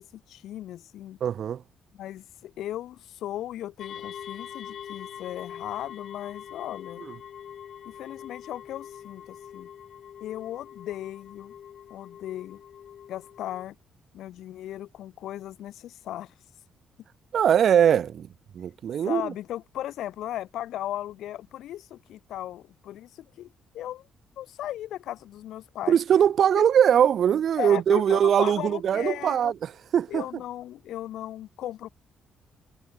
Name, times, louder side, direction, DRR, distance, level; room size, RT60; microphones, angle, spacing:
voice 1, 0.0-1.2 1.9-7.0 7.8-9.7 10.2-11.5 11.9-12.6 13.1-13.7 14.1-16.3 19.0-24.1 24.4-26.0 26.6-26.7 27.6-29.5 30.1-31.9, left 13 dB, 80° left, 1.5 m, -36 dB
voice 2, 1.2-1.6 17.3-18.3 18.5-19.3 25.9-30.2, right 9 dB, 60° right, 1.2 m, -21 dB
sound 1, 3.8-13.6, left 9 dB, 60° left, 1.8 m, -43 dB
cardioid pair, 90°, 0 cm